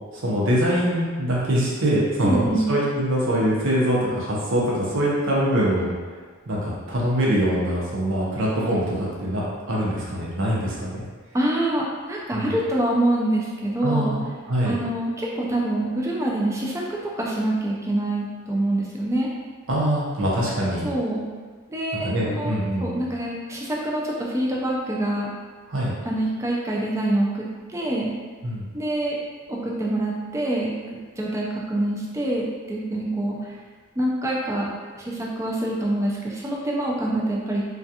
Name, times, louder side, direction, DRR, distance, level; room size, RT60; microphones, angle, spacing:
voice 1, 0.2-5.9 6.5-11.0 12.3-12.6 13.8-14.8 19.7-20.9 22.0-23.0 25.7-26.0 28.4-28.7, equal, 65° right, -5 dB, 0.7 m, -23 dB
voice 2, 2.2-2.7 11.3-14.1 14.7-19.3 20.8-21.3 21.7-25.3 26.0-28.1 28.7-29.2 29.5-33.5 34.0-34.7 35.0-37.7, right 1 dB, 15° right, -3 dB, 0.3 m, -25 dB
2.3 x 2.3 x 2.7 m, 1.5 s
head